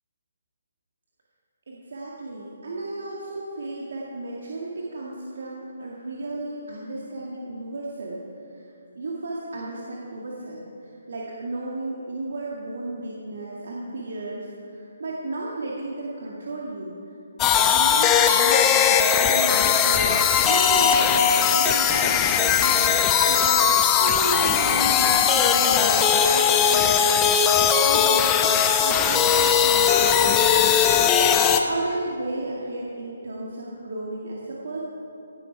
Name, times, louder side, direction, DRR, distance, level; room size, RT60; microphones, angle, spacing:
voice 1, 1.7-8.2 8.5-8.7 9.0-16.9 17.4-20.1 20.4-27.2 27.8-30.8 31.5-34.8, right 2 dB, 60° right, -4 dB, 2.0 m, -34 dB
sound 1, 17.4-31.6, left 8 dB, 20° left, 0.8 m, -19 dB
17.5 x 10.5 x 4.7 m, 2.7 s
figure-of-eight pair, 140°, 0 cm